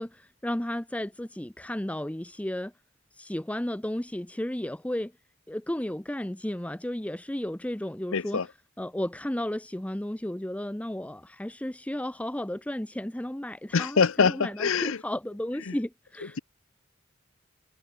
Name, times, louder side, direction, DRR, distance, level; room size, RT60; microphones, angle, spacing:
voice 1, 0.0-2.7 3.1-5.1 5.5-8.4 8.8-16.4, left 1 dB, 5° left, 0.6 m, -33 dB
voice 2, 8.1-8.5 13.7-15.0 15.7-15.8, left 5 dB, 75° left, 0.7 m, -24 dB
head